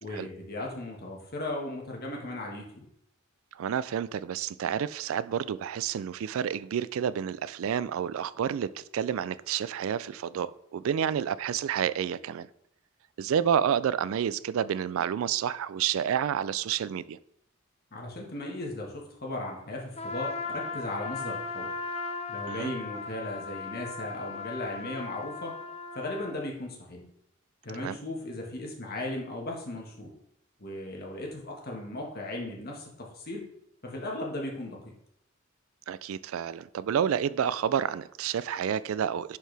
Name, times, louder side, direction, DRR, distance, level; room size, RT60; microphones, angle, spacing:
voice 1, 0.0-2.9 17.9-21.7 22.3-25.6 25.9-27.0 27.6-30.1 30.6-33.5 33.8-34.9, left 1 dB, 45° left, 0 dB, 1.6 m, -37 dB
voice 2, 3.5-12.5 13.2-17.2 22.5-22.7 27.8-28.0 35.9-39.4, right 8 dB, 75° right, 17 dB, 0.3 m, -29 dB
Trumpet, 20.0-26.4, left 4 dB, 30° left, 0.6 m, -37 dB
10.5 x 4.6 x 3.4 m, 0.74 s
head